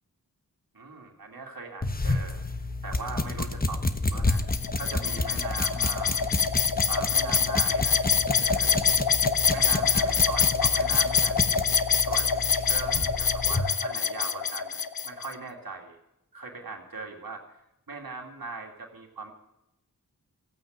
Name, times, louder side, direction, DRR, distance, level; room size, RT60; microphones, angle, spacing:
voice 1, 0.7-2.5 2.8-3.8 4.1-4.4 4.8-6.2 6.9-8.0 8.4-8.8 9.5-11.4 12.0-14.8 15.1-16.0 16.3-17.5 17.9-19.3, right 4 dB, 75° right, 1 dB, 2.5 m, -39 dB
sound 1, 1.8-13.7, left 2 dB, 25° left, 1.2 m, -30 dB
sound 2, 4.3-15.3, left 6 dB, 75° left, 0.9 m, -25 dB
16.0 x 8.7 x 9.2 m, 0.84 s
wide cardioid pair, 55°, 36 cm